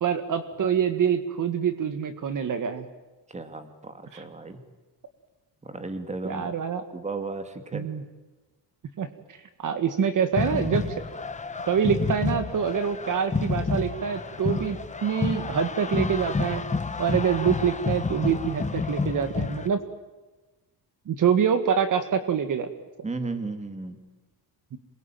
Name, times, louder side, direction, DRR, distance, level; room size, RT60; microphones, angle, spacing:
voice 1, 0.0-2.9 4.1-4.2 6.2-6.8 7.7-8.0 9.0-11.0 11.7-16.6 17.0-19.8 21.1-22.7 24.7-24.8, right 7 dB, 50° right, 9 dB, 1.9 m, -26 dB
voice 2, 3.3-4.6 5.6-6.5 6.9-7.9 23.0-24.0, right 3 dB, 15° right, 8 dB, 2.5 m, -34 dB
sound 1, 10.3-19.7, left 4 dB, 15° left, 1.2 m, -29 dB
27.5 x 22.0 x 9.2 m, 1.2 s
cardioid pair, 155°, 41 cm